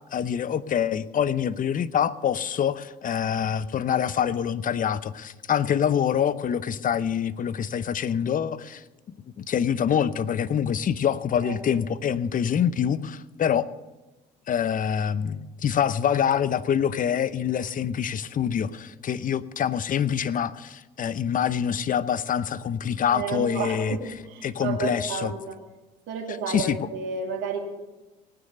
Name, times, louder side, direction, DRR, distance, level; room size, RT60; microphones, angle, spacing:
voice 1, 0.1-13.7 14.5-24.0 24.4-25.3 26.5-26.8, left 8 dB, 40° left, 16 dB, 0.8 m, -25 dB
voice 2, 23.1-25.6 26.1-27.6, right 5 dB, 65° right, 1 dB, 2.8 m, -31 dB
18.5 x 9.6 x 6.6 m, 1.1 s
hypercardioid pair, 60°, 21 cm